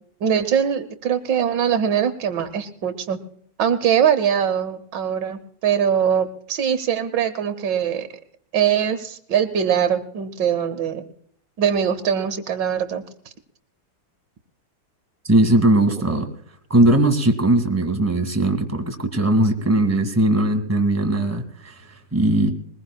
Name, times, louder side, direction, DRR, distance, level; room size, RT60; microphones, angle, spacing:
voice 1, 0.2-3.2 3.6-8.1 8.5-11.0 11.6-13.0, right 8 dB, 75° right, 10 dB, 1.5 m, -22 dB
voice 2, 15.3-16.3 16.7-22.5, right 1 dB, 10° right, 4 dB, 1.7 m, -19 dB
21.5 x 20.5 x 2.2 m, 0.62 s
omnidirectional pair, 2.0 m